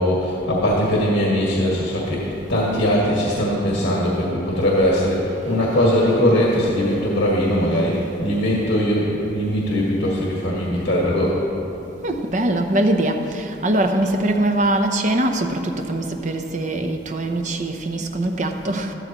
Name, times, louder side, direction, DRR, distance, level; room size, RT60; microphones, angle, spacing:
voice 1, 0.0-11.4, equal, 70° left, -5 dB, 1.8 m, -20 dB
voice 2, 12.0-18.9, right 1 dB, 40° right, 5 dB, 0.7 m, -22 dB
13.5 x 13.0 x 3.0 m, 2.9 s
head